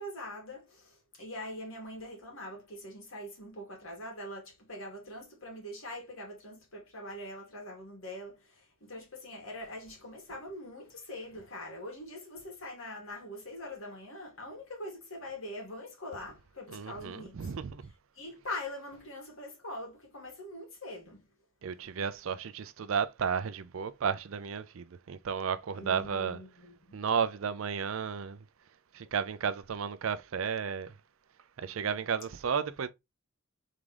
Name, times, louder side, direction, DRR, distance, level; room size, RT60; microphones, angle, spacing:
voice 1, 0.0-17.5 18.1-21.2 21.7-21.9 25.7-27.0, left 1 dB, 70° left, 2.3 m, -43 dB
voice 2, 16.7-17.8 21.6-26.4 26.9-28.4 28.9-30.9 31.6-32.9, right 6 dB, 65° right, 0.4 m, -33 dB
3.7 x 3.6 x 3.3 m
head